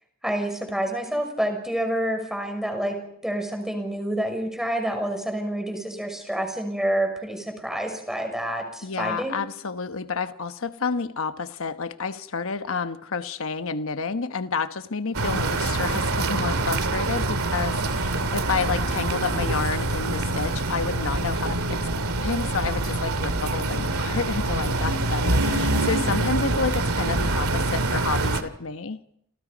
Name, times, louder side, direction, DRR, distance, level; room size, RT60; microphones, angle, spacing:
voice 1, 0.2-3.0 3.2-9.4, right 1 dB, ahead, 4 dB, 6.2 m, -28 dB
voice 2, 8.8-29.0, left 5 dB, 65° left, 10 dB, 1.1 m, -30 dB
sound 1, 15.1-28.4, right 2 dB, 80° right, 2.4 m, -25 dB
29.5 x 28.0 x 5.2 m, 0.71 s
head